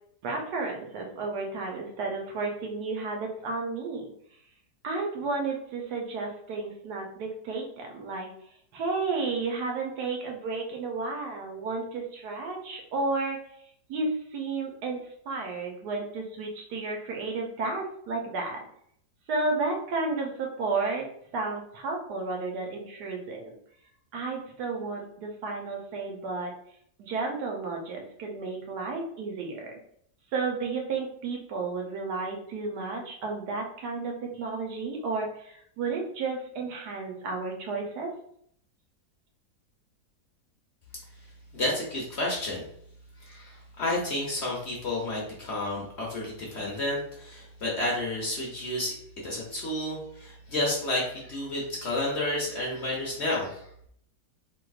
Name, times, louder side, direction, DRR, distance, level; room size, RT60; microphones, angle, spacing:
voice 1, 0.2-4.1 4.8-8.3 8.7-13.4 13.9-18.7 19.3-23.5 24.1-26.5 27.0-29.7 30.3-38.1, right 3 dB, 80° right, 1 dB, 1.3 m, -32 dB
voice 2, 41.5-42.6 43.2-49.0 49.2-53.7, left 1 dB, 55° left, -4 dB, 0.9 m, -31 dB
3.6 x 2.7 x 2.3 m, 0.67 s
omnidirectional pair, 1.7 m